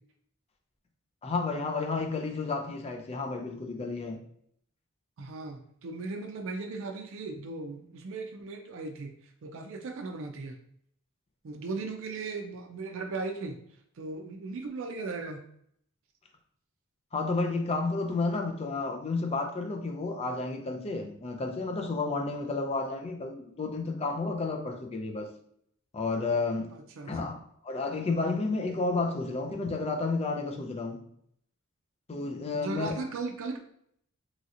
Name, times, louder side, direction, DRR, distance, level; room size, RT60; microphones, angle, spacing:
voice 1, 1.2-4.2 17.1-25.3 25.9-26.7 27.1-31.0 32.1-33.0, left 3 dB, 30° left, 4 dB, 0.4 m, -31 dB
voice 2, 5.2-9.1 9.4-10.6 11.4-13.6 14.0-15.4 26.7-27.1 32.5-33.6, right 3 dB, 65° right, 4 dB, 0.4 m, -37 dB
3.1 x 2.8 x 2.5 m, 0.67 s
head